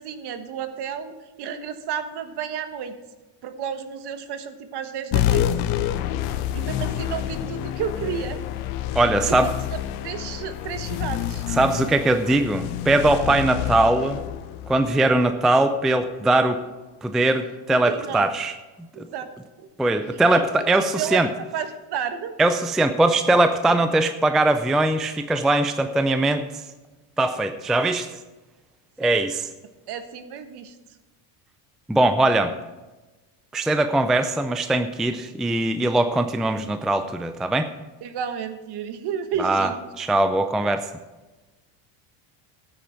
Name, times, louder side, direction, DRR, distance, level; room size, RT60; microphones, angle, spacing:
voice 1, 0.0-3.0 3.4-5.5 6.5-8.4 9.3-9.5 10.0-11.5 17.7-18.3 18.9-19.3 19.6-19.7 20.3-22.4 29.0-29.2 29.9-30.7 38.0-39.9, right 8 dB, 55° right, 9 dB, 1.4 m, -32 dB
sound 1, 5.1-16.0, left 12 dB, 85° left, 1.0 m, -28 dB
voice 2, 9.0-9.5 11.5-14.2 14.7-16.6 17.0-18.5 19.0-19.1 19.8-21.3 22.4-26.4 27.2-28.1 29.0-29.5 31.9-32.5 33.5-37.7 39.4-39.7 40.0-40.9, right 2 dB, ahead, 8 dB, 0.4 m, -21 dB
13.0 x 8.7 x 4.5 m, 1.2 s
supercardioid pair, 110°, 48 cm